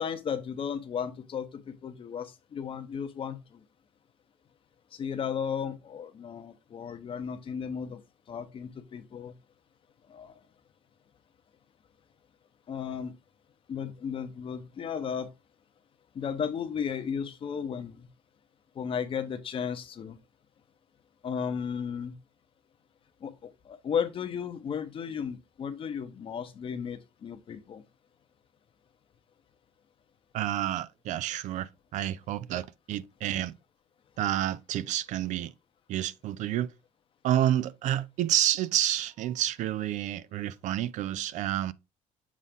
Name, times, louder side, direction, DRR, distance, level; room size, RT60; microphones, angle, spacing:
voice 1, 0.0-3.6 4.9-8.0 8.3-9.3 10.1-10.4 12.7-13.1 13.7-15.3 16.1-18.1 18.7-20.2 21.2-22.1 23.2-27.8, left 7 dB, 40° left, 0.9 m, -34 dB
voice 2, 30.3-33.5 34.2-35.5 35.9-36.7 37.2-41.7, right 12 dB, 60° right, 0.4 m, -29 dB
7.4 x 3.9 x 3.6 m
cardioid pair, 125°, 14 cm